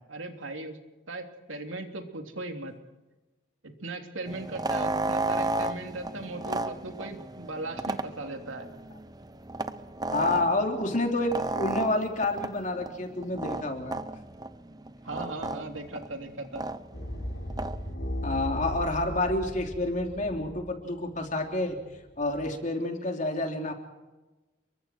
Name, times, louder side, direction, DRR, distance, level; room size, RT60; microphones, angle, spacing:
voice 1, 0.1-0.8 1.1-2.7 3.8-8.7 15.0-16.6, right 2 dB, 90° right, 4 dB, 3.2 m, -38 dB
sound 1, 4.3-17.9, right 2 dB, 20° right, 0.8 m, -34 dB
voice 2, 10.1-14.0 18.2-21.8 22.2-23.7, left 2 dB, 40° left, 3 dB, 3.3 m, -29 dB
sound 2, 16.9-21.2 21.8-22.4, equal, 70° left, 5.7 m, -36 dB
30.0 x 23.5 x 4.6 m, 1.1 s
head